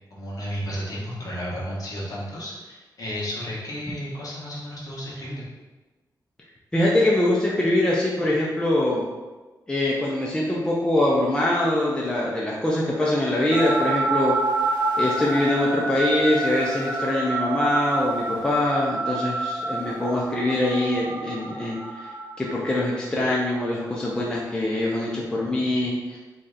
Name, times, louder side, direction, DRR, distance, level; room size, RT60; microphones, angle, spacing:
voice 1, 0.1-5.4, equal, 50° left, -6 dB, 1.0 m, -33 dB
voice 2, 6.7-9.0 9.7-14.4 15.0-22.1 22.4-26.2, left 1 dB, 10° left, -4 dB, 0.4 m, -23 dB
sound 1, 13.5-23.0, right 2 dB, 75° right, 0.6 m, -28 dB
3.1 x 2.7 x 3.7 m, 1.2 s
wide cardioid pair, 170°, 8 cm